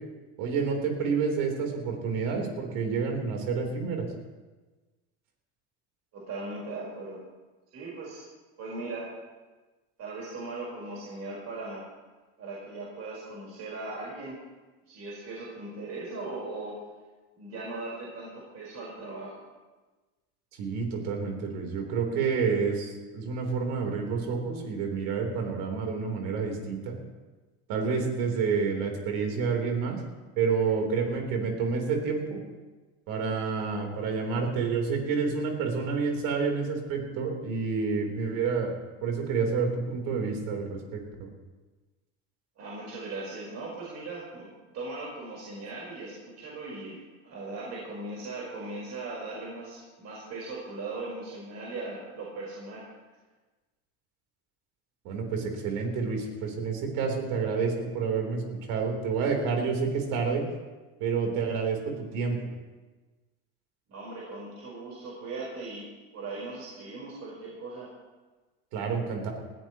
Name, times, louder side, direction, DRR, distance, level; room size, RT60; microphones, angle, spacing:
voice 1, 0.4-4.1 20.6-27.0 27.7-30.0 30.4-32.4 33.1-38.7 39.0-41.0 55.0-58.4 58.7-60.4 61.0-62.4 68.7-69.3, right 5 dB, 70° right, 2 dB, 3.9 m, -29 dB
voice 2, 6.1-7.2 7.7-8.3 8.6-9.1 10.0-11.8 12.4-14.4 14.9-16.8 17.3-19.4 31.1-31.2 42.6-52.9 63.9-65.9 66.1-67.9, right 2 dB, 50° right, -5 dB, 4.8 m, -39 dB
20.0 x 14.5 x 3.1 m, 1.2 s
supercardioid pair, 100°, 34 cm